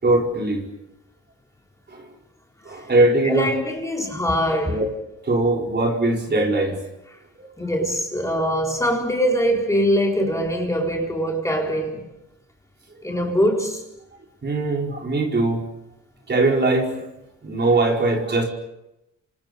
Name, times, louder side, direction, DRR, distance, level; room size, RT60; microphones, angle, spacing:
voice 1, 0.0-0.7 1.9-2.1 2.6-3.5 4.7-4.9 5.2-6.8 7.4-7.5 14.4-15.6 16.3-17.1 17.4-18.5, right 2 dB, 35° right, 4.8 m, -21 dB
voice 2, 3.2-4.8 7.6-12.1 13.0-13.8, equal, 10° left, 4.3 m, -22 dB
28.5 x 26.5 x 5.4 m
cardioid pair, 90°, 30 cm